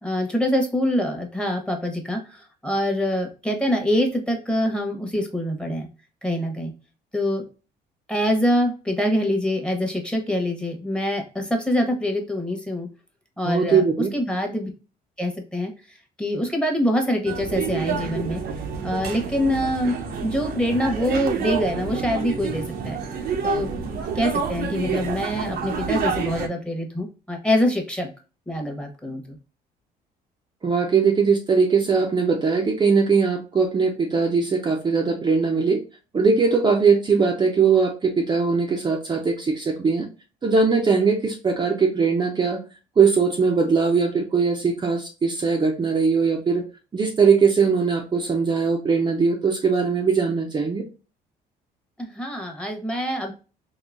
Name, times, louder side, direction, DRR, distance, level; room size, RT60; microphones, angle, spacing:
voice 1, 0.0-5.9 6.2-6.7 7.1-7.4 8.1-12.9 13.4-13.8 14.1-14.7 15.2-15.7 16.2-18.4 18.8-23.0 23.4-28.1 28.5-29.4 52.0-53.3, left 1 dB, 5° left, 2 dB, 1.0 m, -25 dB
voice 2, 13.5-14.1 30.6-35.8 36.1-40.1 40.4-42.6 43.0-46.7 46.9-50.8, right 5 dB, 25° right, 1 dB, 0.6 m, -20 dB
sound 1, 17.3-26.5, right 6 dB, 60° right, 0.7 m, -28 dB
3.9 x 2.7 x 2.4 m, 0.33 s
cardioid pair, 110°, 17 cm